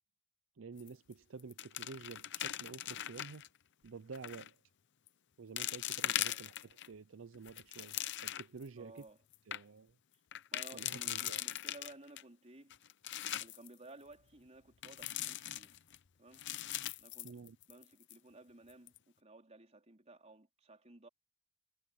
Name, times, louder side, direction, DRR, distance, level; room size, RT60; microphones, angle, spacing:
voice 1, 0.6-3.4 3.8-4.6 5.4-9.0 9.5-10.0 10.7-11.4 17.2-17.6, right 4 dB, 70° right, 0.6 m, -50 dB
sound 1, 0.8-1.1 1.4-3.5 4.1-4.5 5.1-5.2 5.6-6.9 7.3-8.6 9.0-9.1 9.3-9.6 10.3-12.2 12.7-13.7 14.8-16.0 16.3-17.8 18.1-18.2 18.7-19.0, left 13 dB, 60° left, 0.7 m, -40 dB
voice 2, 8.8-9.2 10.5-12.8 13.4-15.7 16.2-16.4 17.0-17.4 17.7-21.1, right 2 dB, 30° right, 4.1 m, -56 dB
head